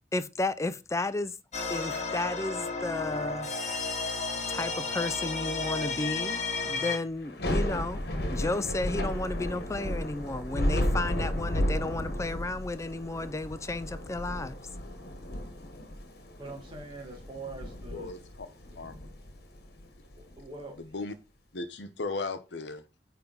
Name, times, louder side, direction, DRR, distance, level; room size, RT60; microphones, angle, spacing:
voice 1, 0.1-1.4 1.7-3.5 4.5-8.0 8.3-14.6, left 2 dB, 15° left, 0.4 m, -33 dB
sound 1, 1.5-7.0, left 4 dB, 40° left, 1.2 m, -32 dB
Thunder / Rain, 7.2-20.4, left 1 dB, 65° left, 1.3 m, -33 dB
voice 2, 16.4-18.1 18.7-18.8 20.2-20.8, right 3 dB, 30° right, 1.5 m, -43 dB
voice 3, 17.9-18.5 18.7-18.9 20.7-21.2 21.5-22.8, left 3 dB, 85° left, 0.9 m, -36 dB
8.9 x 3.5 x 3.9 m
head